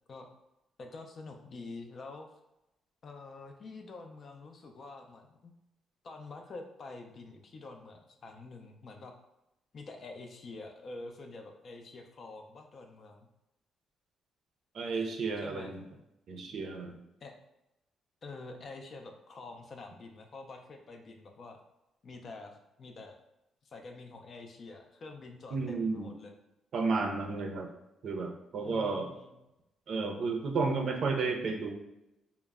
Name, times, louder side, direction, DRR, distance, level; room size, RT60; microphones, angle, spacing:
voice 1, 0.8-2.3 3.0-5.5 6.0-9.1 9.7-13.3 15.4-15.7 17.2-17.3 18.2-21.6 22.0-23.2 23.6-26.3 28.6-29.3, left 3 dB, 50° left, 4 dB, 0.4 m, -47 dB
voice 2, 14.7-15.8 16.3-17.0 25.5-26.1 26.7-27.7 28.0-29.1 29.9-31.7, right 4 dB, 60° right, 2 dB, 0.5 m, -32 dB
2.1 x 2.0 x 3.4 m, 0.89 s
cardioid pair, 90°, 0 cm